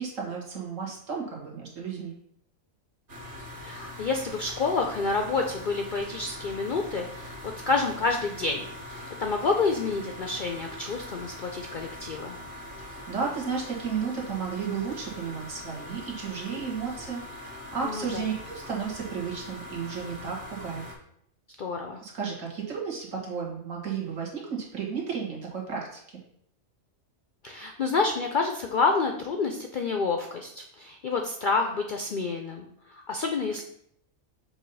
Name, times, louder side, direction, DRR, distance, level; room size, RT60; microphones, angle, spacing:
voice 1, 0.0-2.2 12.8-20.8 22.0-26.2, right 6 dB, 70° right, -2 dB, 1.9 m, -33 dB
sound 1, 3.1-20.9, left 1 dB, 40° right, 1.3 m, -42 dB
voice 2, 3.6-7.4 7.7-12.4 17.8-18.3 21.6-22.0 27.4-33.6, left 4 dB, 60° left, 3 dB, 0.5 m, -28 dB
7.1 x 2.8 x 5.4 m, 0.71 s
omnidirectional pair, 1.4 m